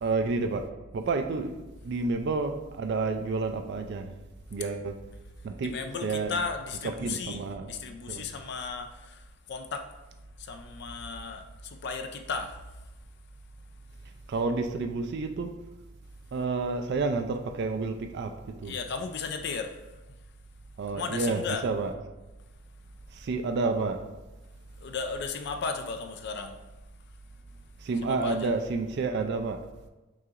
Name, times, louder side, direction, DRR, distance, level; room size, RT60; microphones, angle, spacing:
voice 1, 0.0-0.6 0.9-1.5 1.8-4.1 4.5-4.9 5.4-5.7 6.0-6.3 7.0-7.7 8.1-8.2 14.3-15.5 16.3-18.3 18.6-18.7 20.8-21.9 23.1-24.0 27.8-29.6, right 3 dB, 50° right, 5 dB, 0.3 m, -29 dB
voice 2, 5.6-9.2 9.5-9.9 10.4-12.6 18.6-19.8 20.9-21.6 24.8-26.5 28.1-28.5, left 5 dB, 50° left, 6 dB, 0.4 m, -35 dB
6.1 x 2.8 x 2.4 m, 1.1 s
head